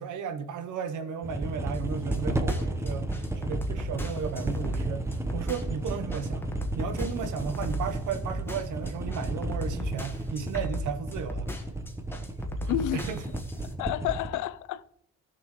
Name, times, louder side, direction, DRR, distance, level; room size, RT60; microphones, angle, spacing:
voice 1, 0.0-5.1 5.3-11.5 12.9-13.2, right 6 dB, 80° right, 1.0 m, -34 dB
sound 1, 1.2-14.3, right 1 dB, 10° right, 0.9 m, -33 dB
sound 2, 1.7-13.7, equal, 5° left, 1.3 m, -36 dB
voice 2, 12.7-13.1 13.8-14.8, left 12 dB, 90° left, 0.5 m, -30 dB
16.5 x 6.6 x 3.1 m
cardioid pair, 90°, 30 cm